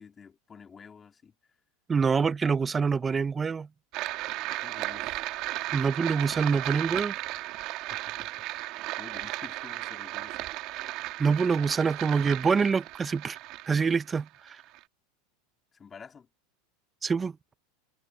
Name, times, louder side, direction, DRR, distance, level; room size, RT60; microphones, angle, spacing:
voice 1, 0.0-1.3 4.6-5.4 7.9-8.3 8.5-8.7 9.0-10.5 15.7-16.3, left 6 dB, 25° left, 3.7 m, -50 dB
voice 2, 1.9-3.7 5.7-7.1 11.2-13.4 13.7-14.6 17.0-17.4, right 5 dB, 20° right, 0.7 m, -26 dB
sound 1, 3.9-14.8, right 18 dB, 55° right, 2.2 m, -35 dB
supercardioid pair, 115°, 0 cm